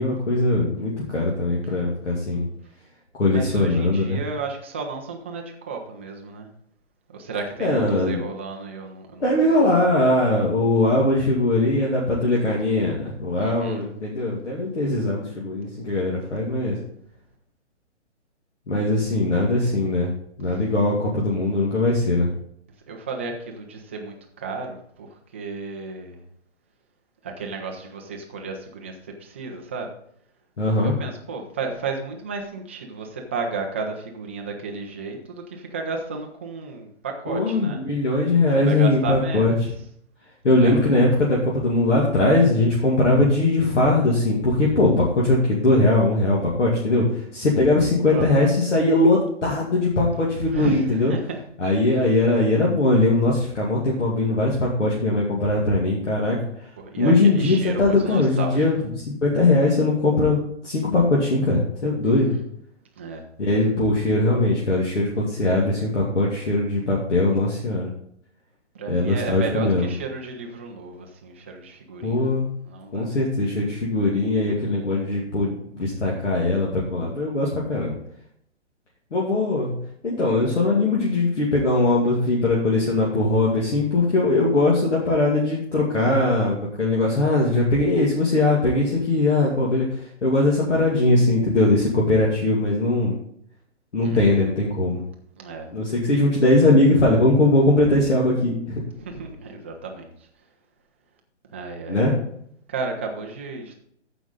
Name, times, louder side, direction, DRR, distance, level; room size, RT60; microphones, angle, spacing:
voice 1, 0.0-2.4 3.2-4.2 7.6-8.2 9.2-16.8 18.7-20.1 20.4-22.3 30.6-30.9 37.3-39.5 40.4-47.0 47.3-51.1 51.6-56.4 57.0-62.4 63.4-67.9 68.9-69.9 72.0-72.5 72.9-78.0 79.1-79.7 80.0-89.9 90.2-93.2 93.9-95.0 95.7-98.8 101.9-102.1, left 2 dB, 75° left, -4 dB, 2.5 m, -20 dB
voice 2, 3.3-6.5 7.1-9.7 13.4-13.8 22.9-25.1 25.3-26.2 27.2-29.9 30.8-37.8 38.6-39.5 40.5-40.9 48.1-48.5 50.5-51.4 56.8-58.9 62.0-62.4 63.0-63.2 68.7-72.4 72.6-73.1 94.0-94.4 95.4-95.7 98.9-100.1 101.5-102.0 102.7-103.8, right 4 dB, 10° right, 2 dB, 0.4 m, -33 dB
14.0 x 5.2 x 3.9 m, 0.68 s
hypercardioid pair, 140°, 36 cm